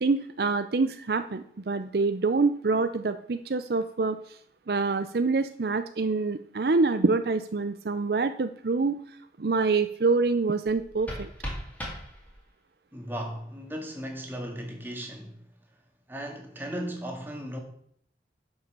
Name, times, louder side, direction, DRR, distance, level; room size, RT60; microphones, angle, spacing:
voice 1, 0.0-4.4 4.7-9.0 9.4-11.3, right 3 dB, 60° right, 0.5 m, -26 dB
sound 1, 10.6-12.7, equal, 10° left, 2.6 m, -38 dB
voice 2, 12.9-15.4 16.1-17.6, equal, 10° right, 1.9 m, -36 dB
11.5 x 5.6 x 6.8 m
head